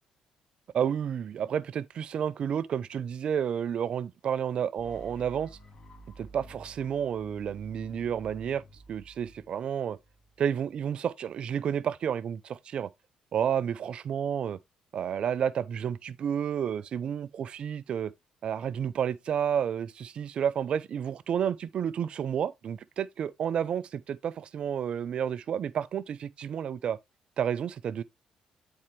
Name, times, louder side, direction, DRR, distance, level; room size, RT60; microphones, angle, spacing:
voice 1, 0.7-5.5 6.2-8.6 8.9-10.0 10.4-12.9 13.3-14.6 14.9-18.1 18.4-27.0 27.4-28.0, right 8 dB, 60° right, 0.5 m, -31 dB
sound 1, 4.8-10.7, right 2 dB, 45° left, 1.9 m, -51 dB
8.5 x 4.4 x 2.9 m
cardioid pair, 80°, 2 cm